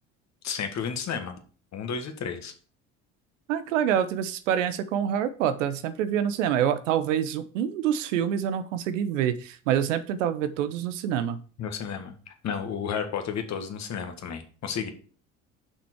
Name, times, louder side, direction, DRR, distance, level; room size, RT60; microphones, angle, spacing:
voice 1, 0.4-1.3 1.7-2.5 11.6-14.9, left 7 dB, 45° left, 6 dB, 1.7 m, -32 dB
voice 2, 3.5-11.4, right 9 dB, 80° right, 12 dB, 0.9 m, -26 dB
6.9 x 6.0 x 4.6 m, 0.40 s
hypercardioid pair, 65°, 37 cm